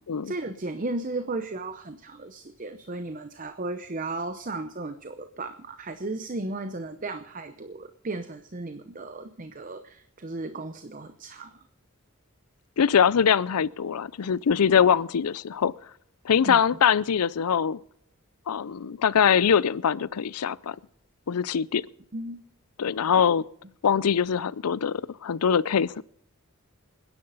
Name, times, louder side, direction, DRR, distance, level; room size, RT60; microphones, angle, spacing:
voice 1, 0.2-11.5 16.5-16.6 22.1-22.4, right 2 dB, 35° right, 0.7 m, -35 dB
voice 2, 12.8-15.7 16.2-17.8 18.5-20.8 21.3-21.9 22.8-23.4 23.8-26.0, left 7 dB, 90° left, 0.5 m, -23 dB
27.5 x 10.5 x 4.0 m
head